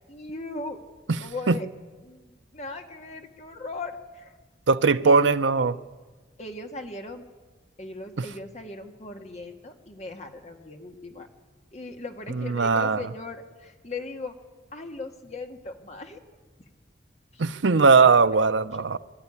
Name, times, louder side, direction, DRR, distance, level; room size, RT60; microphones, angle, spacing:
voice 1, 0.1-0.8 1.2-1.7 2.0-4.4 5.0-5.4 6.4-7.2 7.8-11.3 11.7-14.4 14.7-16.2 17.3-17.4, left 3 dB, 35° left, 1.7 m, -38 dB
voice 2, 4.7-5.8 8.2-8.3 12.3-13.0 17.4-19.0, right 4 dB, 85° right, 0.7 m, -19 dB
23.0 x 13.0 x 9.8 m
head